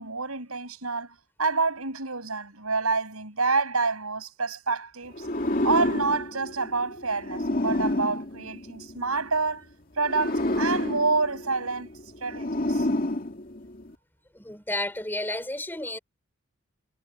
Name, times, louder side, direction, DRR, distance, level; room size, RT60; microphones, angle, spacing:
voice 1, 0.0-5.3 5.6-9.7 10.0-11.9 12.2-12.9, right 4 dB, 80° right, 7.0 m, -28 dB
sound 1, 5.1-9.3 10.0-13.9, left 1 dB, 40° left, 2.4 m, -29 dB
voice 2, 14.3-16.0, left 1 dB, 10° left, 3.6 m, -31 dB
head